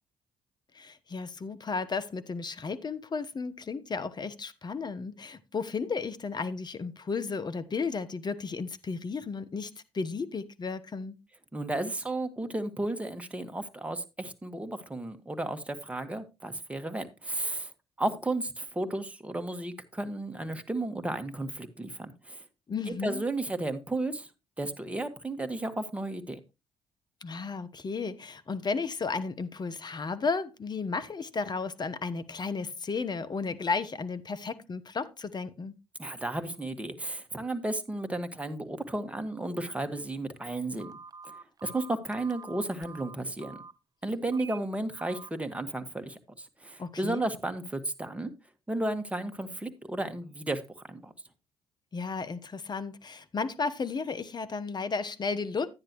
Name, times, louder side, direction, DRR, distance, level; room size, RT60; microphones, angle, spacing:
voice 1, 0.7-11.2 22.7-23.2 27.2-35.7 46.8-47.2 51.9-55.7, left 4 dB, 35° left, 1.1 m, -34 dB
voice 2, 11.5-17.7 18.0-22.4 22.9-24.3 24.6-26.4 36.0-40.9 41.3-41.4 41.6-43.6 44.0-48.3 48.7-51.1, right 2 dB, 10° right, 1.8 m, -33 dB
Telephone, 40.8-43.7 44.3-44.6 45.0-45.3, right 4 dB, 35° right, 0.7 m, -47 dB
11.0 x 9.8 x 3.1 m
hypercardioid pair, 50°, 12 cm